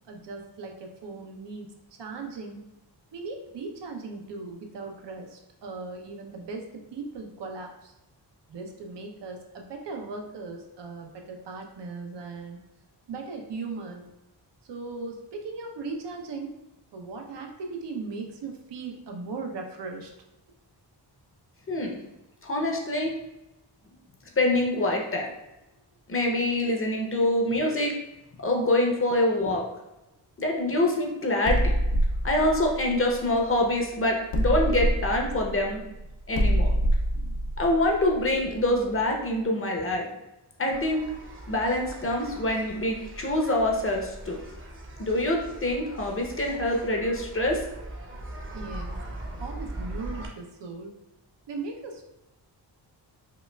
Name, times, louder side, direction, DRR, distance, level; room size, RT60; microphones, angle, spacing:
voice 1, 0.1-1.7 2.0-2.7 3.1-7.9 8.5-12.6 13.1-14.0 14.7-16.6 16.9-20.1 29.5-29.6 48.5-49.0 49.4-51.0 51.5-52.0, right 4 dB, 75° right, 2 dB, 0.7 m, -38 dB
voice 2, 22.4-23.2 24.4-25.3 26.1-27.9 28.4-29.6 30.4-31.8 32.2-35.8 36.3-36.7 37.6-40.1 40.6-41.0 41.5-44.4 45.0-47.6, left 1 dB, 30° left, 1 dB, 0.6 m, -25 dB
sound 1, 31.4-33.8 34.3-39.0, equal, 85° left, 0.7 m, -26 dB
sound 2, 40.7-50.3, right 1 dB, 30° right, 0.7 m, -40 dB
5.0 x 2.4 x 2.2 m, 0.97 s
wide cardioid pair, 95°, 42 cm